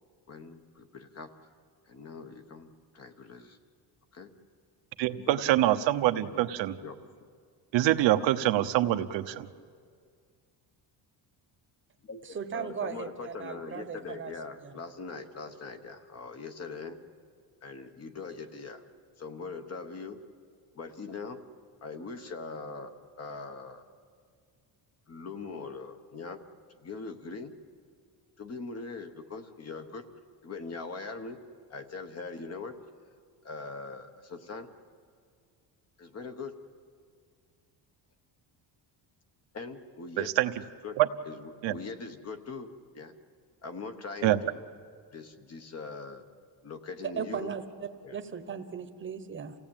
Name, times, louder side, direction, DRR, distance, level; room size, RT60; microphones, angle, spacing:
voice 1, 0.3-1.3 1.9-3.6 4.1-4.3 5.3-5.4 6.2-7.0 12.0-12.2 12.5-17.0 17.6-18.8 19.2-20.2 20.7-21.4 21.8-23.8 25.1-26.4 26.8-27.5 28.4-30.0 30.4-31.4 31.7-32.8 33.4-34.7 36.0-36.5 39.5-40.3 40.8-41.0 41.2-42.7 42.9-43.1 43.6-44.7 45.1-46.2 46.6-47.5 48.0-48.2, left 4 dB, 35° left, 7 dB, 1.3 m, -41 dB
voice 2, 5.0-6.8 7.7-9.5 40.2-40.5 41.0-41.1 41.6-41.8 44.2-44.4, right 14 dB, 75° right, 9 dB, 0.9 m, -25 dB
voice 3, 12.3-14.3 14.6-14.7 47.2-49.5, right 7 dB, 25° right, 8 dB, 1.1 m, -37 dB
28.0 x 16.5 x 8.9 m, 2.1 s
cardioid pair, 165°, 44 cm